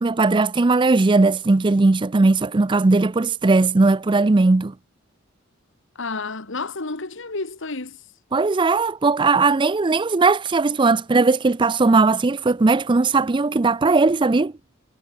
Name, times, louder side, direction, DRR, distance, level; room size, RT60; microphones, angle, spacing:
voice 1, 0.0-4.7 8.3-14.5, right 3 dB, 25° right, 0.4 m, -18 dB
voice 2, 6.0-8.0, left 3 dB, 65° left, 1.9 m, -30 dB
head